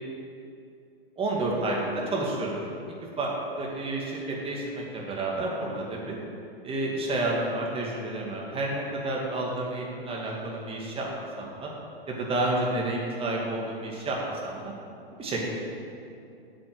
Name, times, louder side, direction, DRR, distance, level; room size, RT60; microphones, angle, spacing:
voice 1, 1.2-2.6 3.2-6.2 6.6-11.1 11.4-11.7 12.1-14.7 15.2-15.4, right 2 dB, 20° right, -2 dB, 2.3 m, -30 dB
8.2 x 8.1 x 7.9 m, 2.6 s
hypercardioid pair, 125°, 31 cm